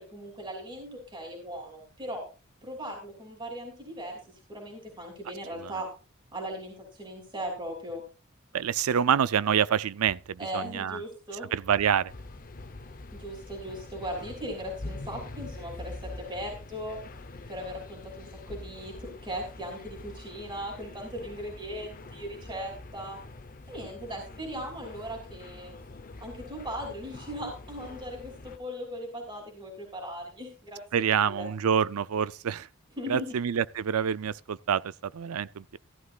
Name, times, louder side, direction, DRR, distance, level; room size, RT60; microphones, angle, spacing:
voice 1, 0.0-2.2 2.6-4.2 4.5-5.9 6.3-8.0 10.4-11.5 13.1-17.0 17.5-23.2 23.7-25.7 26.2-31.5 33.0-33.4, equal, 20° right, 3.1 m, -38 dB
voice 2, 8.5-11.0 11.5-12.1 30.9-32.7 33.1-35.8, right 8 dB, 90° right, 0.4 m, -27 dB
sound 1, 12.1-28.6, left 2 dB, 40° left, 0.8 m, -44 dB
14.5 x 11.5 x 2.4 m
head